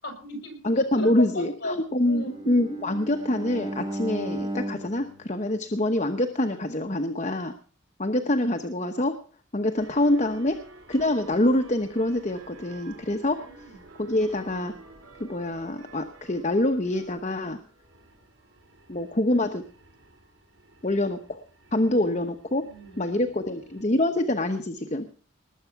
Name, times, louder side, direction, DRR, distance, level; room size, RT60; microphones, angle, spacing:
voice 1, 0.0-1.8 2.0-2.5 13.3-13.8 22.6-24.0, left 1 dB, 55° left, 4 dB, 6.5 m, -38 dB
voice 2, 0.6-7.5 8.0-9.2 9.5-10.6 10.9-13.4 14.0-14.7 15.2-17.6 18.9-19.6 20.8-21.4 21.7-22.6 23.0-25.1, left 1 dB, 35° left, 6 dB, 1.0 m, -25 dB
Bowed string instrument, 2.1-6.3, right 1 dB, 20° right, 2.0 m, -35 dB
sound 1, 9.7-23.9, right 3 dB, 80° right, 3.0 m, -51 dB
19.5 x 8.0 x 5.9 m, 0.40 s
head